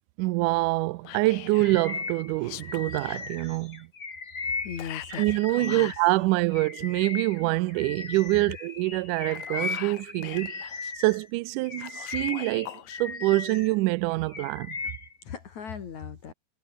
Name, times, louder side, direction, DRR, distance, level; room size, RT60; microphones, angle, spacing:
voice 1, 0.2-3.9 5.2-10.5 11.0-14.8, right 21 dB, 80° right, 1.9 m, -25 dB
Whispering, 1.0-1.8 2.4-3.2 4.8-6.0 9.1-10.9 11.8-13.0, left 15 dB, 80° left, 2.5 m, -42 dB
Bird vocalization bird call bird song, 1.6-6.1 6.5-11.2 11.6-13.7 14.1-15.2, left 4 dB, 30° left, 3.0 m, -37 dB
voice 2, 4.6-6.3 8.5-8.7 9.3-9.5 15.2-16.3, left 7 dB, 55° left, 3.6 m, -39 dB
omnidirectional pair, 4.0 m